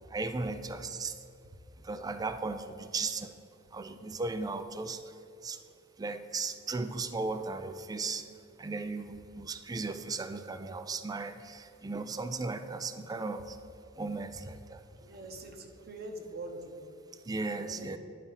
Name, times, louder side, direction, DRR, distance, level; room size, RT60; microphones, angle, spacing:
voice 1, 0.1-1.2 1.8-3.3 3.7-5.2 5.4-5.6 6.0-8.3 8.6-13.6 14.0-14.8 17.2-18.0, right 3 dB, 20° right, 9 dB, 0.3 m, -36 dB
voice 2, 15.0-16.8 17.5-18.0, right 2 dB, 50° right, 3 dB, 0.9 m, -43 dB
10.0 x 4.1 x 5.6 m, 2.7 s
head